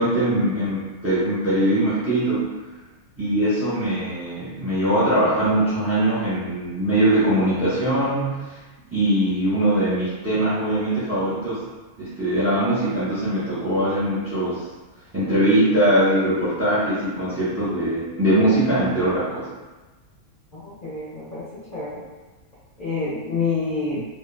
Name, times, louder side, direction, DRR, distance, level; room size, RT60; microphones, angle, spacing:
voice 1, 0.0-2.5 3.2-8.6 8.9-11.6 12.0-14.6 15.1-19.5, right 1 dB, 15° right, -11 dB, 0.7 m, -21 dB
voice 2, 20.5-21.4 21.7-22.0 22.8-24.0, left 4 dB, 45° left, -11 dB, 0.7 m, -27 dB
2.4 x 2.0 x 3.2 m, 1.2 s
omnidirectional pair, 1.5 m